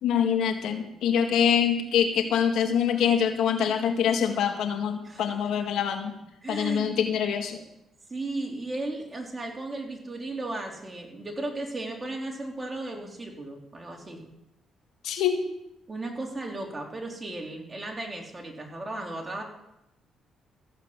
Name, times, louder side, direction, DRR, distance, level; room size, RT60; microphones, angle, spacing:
voice 1, 0.0-6.1 6.5-7.6 15.0-15.4, left 8 dB, 80° left, 5 dB, 1.8 m, -25 dB
voice 2, 6.4-6.9 8.1-14.2 15.9-19.4, right 2 dB, 25° right, 1 dB, 3.4 m, -35 dB
14.5 x 7.9 x 8.1 m, 0.86 s
cardioid pair, 90°, 0 cm